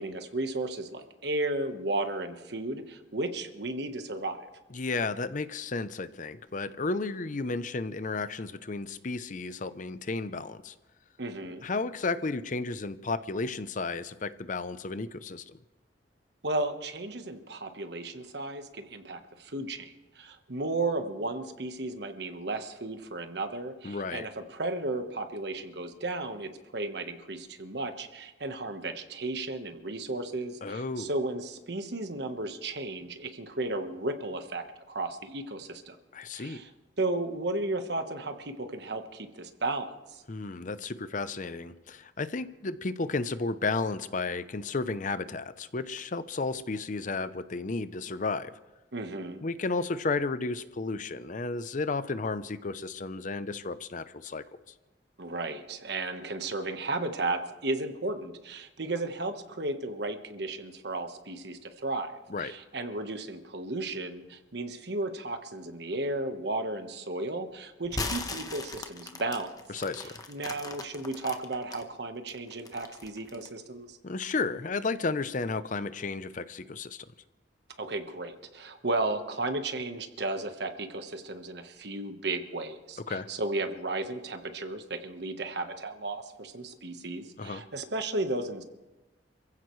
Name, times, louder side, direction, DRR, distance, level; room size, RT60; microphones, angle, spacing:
voice 1, 0.0-4.4 11.2-11.6 16.4-36.0 36.3-36.7 37.0-40.2 48.9-49.4 55.2-69.8 70.3-74.0 77.8-88.6, right 2 dB, 65° right, 7 dB, 1.3 m, -34 dB
voice 2, 4.7-10.7 11.6-15.6 23.8-24.3 30.6-31.1 36.1-36.6 40.3-48.5 49.4-54.4 62.3-62.5 69.7-70.1 74.0-77.1 83.1-83.3 87.4-87.6, left 3 dB, 45° left, 13 dB, 0.6 m, -33 dB
sound 1, 67.8-71.8 72.3-73.6, left 3 dB, 20° left, 1.0 m, -38 dB
28.0 x 15.5 x 3.2 m, 1.0 s
head